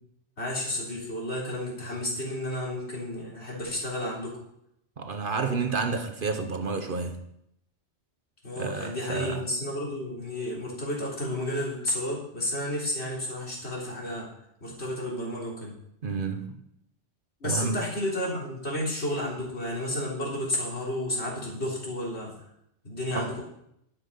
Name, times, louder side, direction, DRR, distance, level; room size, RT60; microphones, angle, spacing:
voice 1, 0.4-4.4 8.4-14.3 14.6-15.7 17.4-22.3 22.8-23.4, left 1 dB, 65° left, 3.9 m, -32 dB
voice 2, 5.0-7.3 8.6-9.4 16.0-16.6 17.4-17.8 23.1-23.3, right 4 dB, 50° right, 1.0 m, -30 dB
11.0 x 7.3 x 5.5 m
omnidirectional pair, 1.2 m